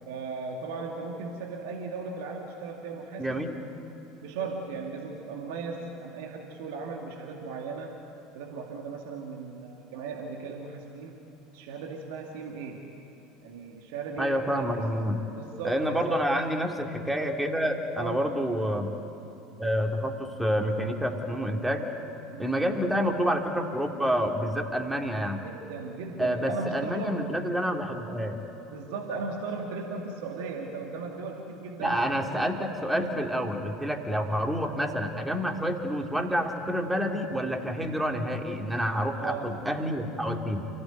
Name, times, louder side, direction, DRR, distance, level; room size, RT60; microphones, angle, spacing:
voice 1, 0.0-3.5 4.2-8.0 8.3-11.2 11.5-12.9 13.4-14.7 15.4-16.2 17.9-18.2 22.3-22.5 25.4-27.3 28.7-32.8 39.1-39.7, right 4 dB, 60° right, 1 dB, 2.4 m, -37 dB
voice 2, 3.2-3.6 14.2-15.2 15.6-18.9 19.6-21.9 22.4-25.4 26.2-28.4 31.8-40.7, equal, 5° right, 3 dB, 2.8 m, -28 dB
28.5 x 17.0 x 9.4 m, 3.0 s
figure-of-eight pair, 70°, 0 cm